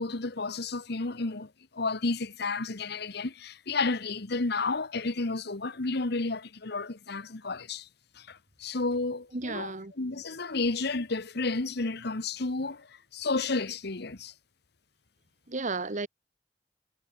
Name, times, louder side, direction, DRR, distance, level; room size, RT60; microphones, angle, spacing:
voice 1, 0.0-7.9 8.1-14.3, left 3 dB, 65° left, 1.3 m, -32 dB
voice 2, 9.3-9.9 15.5-16.1, right 3 dB, 45° right, 1.5 m, -33 dB
head